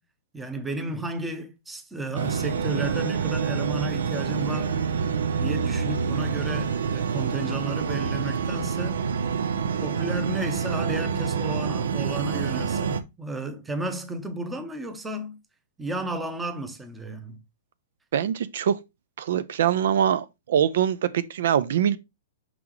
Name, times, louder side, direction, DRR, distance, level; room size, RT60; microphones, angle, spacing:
voice 1, 0.3-4.8 5.4-9.0 9.8-15.4 15.8-17.4, right 2 dB, 5° right, 0.8 m, -33 dB
sound 1, 2.1-13.0, right 6 dB, 90° right, 0.9 m, -27 dB
voice 2, 18.1-18.8 19.2-22.0, right 9 dB, 60° right, 0.5 m, -23 dB
6.0 x 6.0 x 3.1 m
supercardioid pair, 175°, 0 cm